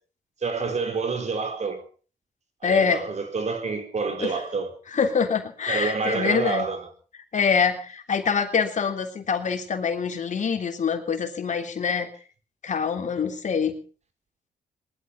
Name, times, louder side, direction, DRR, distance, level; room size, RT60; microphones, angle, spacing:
voice 1, 0.4-1.9 2.6-4.8 5.7-6.9, right 4 dB, 50° right, 4.4 m, -28 dB
voice 2, 2.6-3.0 4.2-4.3 4.9-6.7 7.3-12.1 12.6-13.7, left 6 dB, 55° left, 3.3 m, -25 dB
20.5 x 12.0 x 5.7 m
cardioid pair, 80°, 15 cm